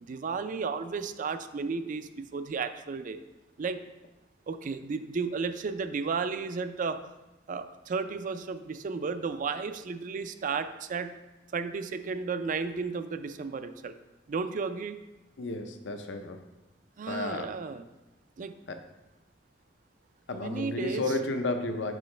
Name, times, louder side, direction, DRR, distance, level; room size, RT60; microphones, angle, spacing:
voice 1, 0.0-3.2 3.6-3.8 4.5-7.0 7.5-11.1 11.5-13.9 14.3-15.0 17.0-17.8 18.4-18.5 20.3-21.0, right 5 dB, 45° right, 10 dB, 0.4 m, -33 dB
voice 2, 15.4-16.5 17.1-17.5 18.7-18.8 20.3-22.0, left 2 dB, 70° left, 7 dB, 0.6 m, -32 dB
6.1 x 5.6 x 3.2 m, 1.0 s
head